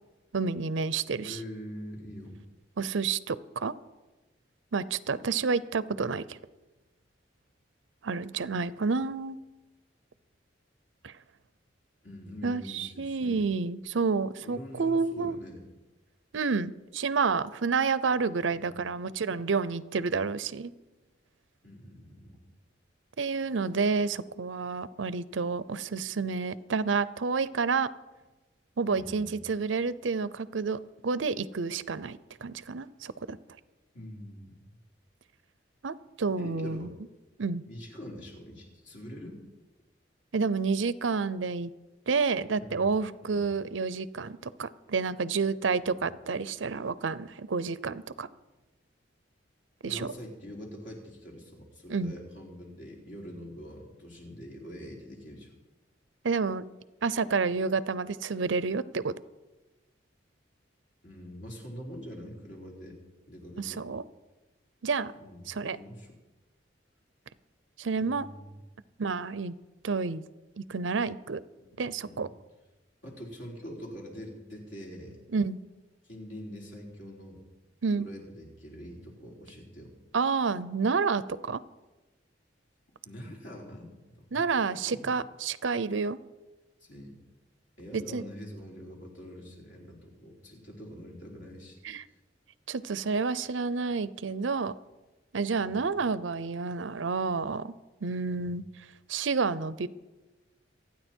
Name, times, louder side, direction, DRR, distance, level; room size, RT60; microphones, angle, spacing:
voice 1, 0.3-1.4 2.8-3.7 4.7-6.4 8.0-9.4 11.0-11.1 12.4-15.4 16.3-20.7 23.2-27.9 28.8-33.4 35.8-36.9 37.4-37.6 40.3-41.7 42.1-48.3 49.8-50.1 51.9-52.1 56.2-56.6 57.0-59.1 63.6-64.0 64.8-65.1 65.5-65.8 67.8-68.3 69.0-69.5 69.8-70.2 70.6-71.4 71.8-72.3 75.3-75.6 77.8-78.1 80.1-81.6 84.3-86.2 87.9-88.2 91.8-92.0 92.7-94.7 95.3-97.7 98.0-98.6 99.1-99.9, right 4 dB, 90° right, 17 dB, 0.6 m, -29 dB
voice 2, 1.2-2.4 12.0-13.4 14.4-15.6 18.5-18.9 21.6-22.4 28.9-29.4 33.9-34.8 36.4-36.9 37.7-39.4 42.6-42.8 43.2-43.4 45.9-46.1 49.8-55.5 61.0-63.0 63.3-63.9 65.2-66.1 68.0-68.6 71.6-72.3 73.0-75.2 76.0-77.4 77.9-79.9 83.0-85.1 86.8-87.2 87.8-91.8 92.1-92.2 95.6-95.9 98.3-98.6, equal, 70° left, -2 dB, 4.2 m, -44 dB
27.0 x 9.6 x 4.5 m, 1.1 s
head